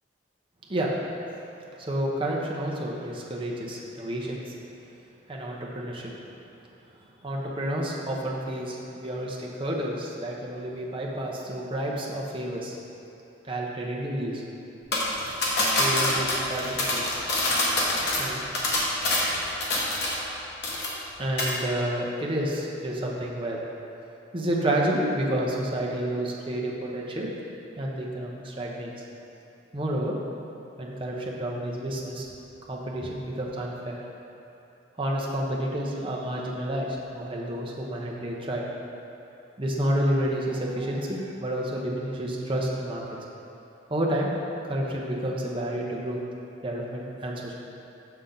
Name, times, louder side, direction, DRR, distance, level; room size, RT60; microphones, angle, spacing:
voice 1, 1.6-4.5 5.3-6.1 7.2-12.8 13.4-14.4 15.8-17.0 18.2-18.4 19.6-20.4 21.2-23.6 24.3-27.3 27.8-28.9 29.7-30.1 30.8-32.3 32.7-34.0 35.0-36.9 37.1-38.6 39.6-43.0 43.9-44.3 44.6-46.2 46.6-47.6, right 1 dB, 25° right, -3 dB, 0.8 m, -30 dB
sound 1, 14.9-20.4 20.6-21.1 21.4-21.6, left 1 dB, 60° left, 1.2 m, -25 dB
6.6 x 5.7 x 3.9 m, 2.8 s
head